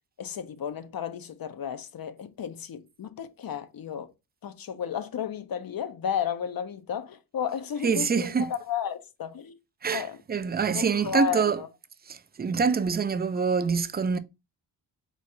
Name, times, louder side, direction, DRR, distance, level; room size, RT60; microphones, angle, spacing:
voice 1, 0.2-4.1 4.4-9.6 9.9-10.2 10.7-11.7, left 8 dB, 55° left, 0.7 m, -33 dB
voice 2, 7.8-8.5 9.8-11.6 12.1-14.2, right 5 dB, 25° right, 0.4 m, -25 dB
4.1 x 2.4 x 4.2 m
cardioid pair, 80°, 43 cm